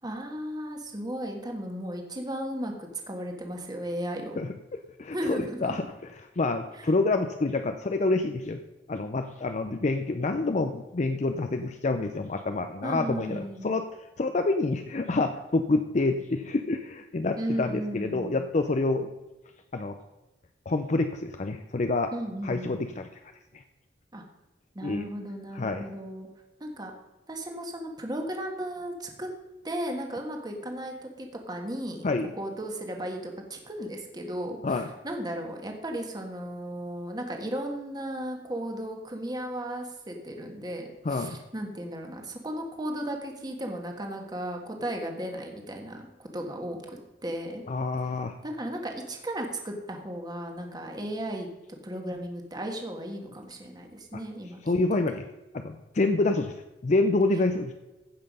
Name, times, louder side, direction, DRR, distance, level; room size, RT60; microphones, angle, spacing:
voice 1, 0.0-4.4 5.1-5.9 6.7-6.9 12.8-13.7 17.4-18.4 22.1-22.8 24.1-24.2 24.7-26.3 26.6-26.9 27.3-29.3 29.6-32.1 32.3-47.6 48.4-51.5 51.8-54.8, right 1 dB, 25° right, 3 dB, 1.4 m, -35 dB
voice 2, 4.4-8.6 8.9-13.8 14.2-19.1 19.7-20.0 20.7-22.1 22.4-23.1 23.5-23.6 24.8-25.0 25.5-25.9 32.0-32.3 34.6-34.9 41.0-41.4 47.7-48.3 54.7-55.3 55.5-56.5 56.8-57.7, left 2 dB, 40° left, 7 dB, 0.5 m, -27 dB
15.5 x 5.7 x 5.4 m, 1.1 s
head